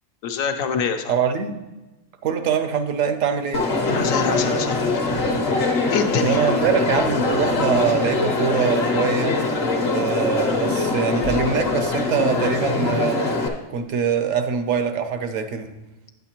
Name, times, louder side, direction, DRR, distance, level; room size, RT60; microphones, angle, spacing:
voice 1, 0.2-1.1 3.8-5.0 5.9-6.5, left 5 dB, 75° left, 6 dB, 1.1 m, -25 dB
voice 2, 1.1-1.6 2.2-3.6 6.2-9.4 9.9-13.3 13.7-15.7, right 6 dB, 70° right, 8 dB, 1.0 m, -23 dB
Crowd, 3.5-13.5, left 3 dB, 50° left, 1.0 m, -22 dB
9.0 x 8.0 x 2.9 m, 1.1 s
omnidirectional pair, 1.5 m